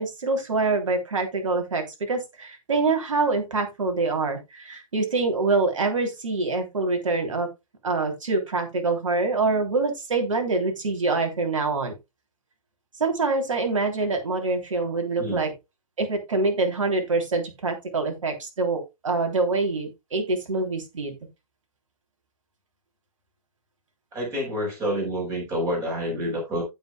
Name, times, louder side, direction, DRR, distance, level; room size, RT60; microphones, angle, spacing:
voice 1, 0.0-7.5 7.8-11.9 13.0-15.5 16.0-21.1, right 3 dB, 55° right, 3.2 m, -25 dB
voice 2, 24.1-26.6, equal, 15° right, 4.7 m, -28 dB
15.5 x 5.6 x 2.2 m
figure-of-eight pair, 130°, 19 cm